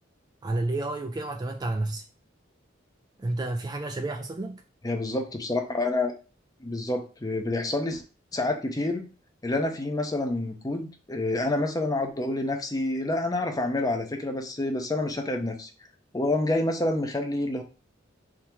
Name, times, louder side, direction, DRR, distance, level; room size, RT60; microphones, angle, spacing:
voice 1, 0.4-2.0 3.2-4.6, right 2 dB, 20° right, 0.3 m, -30 dB
voice 2, 4.8-6.1 6.6-8.0 8.3-9.1 9.4-15.7 16.1-17.6, left 2 dB, 20° left, 0.6 m, -28 dB
3.7 x 2.8 x 4.4 m
head